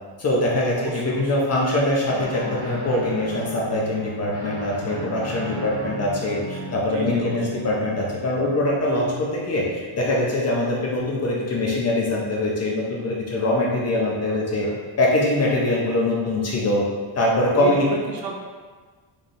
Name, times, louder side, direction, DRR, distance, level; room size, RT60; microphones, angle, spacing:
voice 1, 0.2-14.7 15.0-16.9 17.2-17.9, left 1 dB, 35° left, -3 dB, 0.4 m, -23 dB
voice 2, 0.7-1.3 6.9-7.6 14.6-14.8 17.5-18.3, right 4 dB, 45° right, 0 dB, 0.5 m, -32 dB
Guitar, 2.0-9.7, right 1 dB, 10° right, 1.1 m, -36 dB
4.1 x 3.3 x 2.5 m, 1.5 s
cardioid pair, 170°, 50 cm